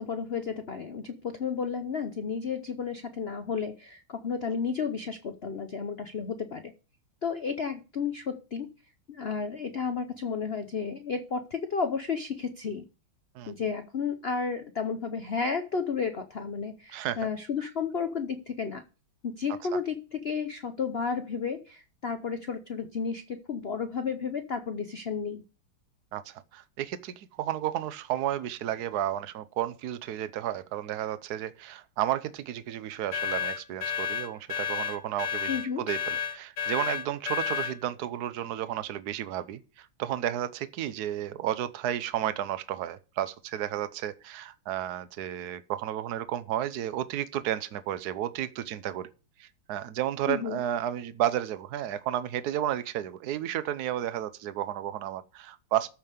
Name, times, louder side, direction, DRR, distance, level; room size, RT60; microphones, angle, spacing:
voice 1, 0.0-6.7 7.2-8.7 9.1-12.8 13.5-18.8 19.2-25.4 35.5-35.8 50.3-50.6, left 5 dB, 85° left, 0.5 m, -32 dB
voice 2, 26.1-49.1 49.4-55.9, right 11 dB, 60° right, 1.2 m, -32 dB
sound 1, 33.1-37.8, left 8 dB, 60° left, 1.7 m, -31 dB
13.5 x 5.5 x 6.6 m
omnidirectional pair, 2.3 m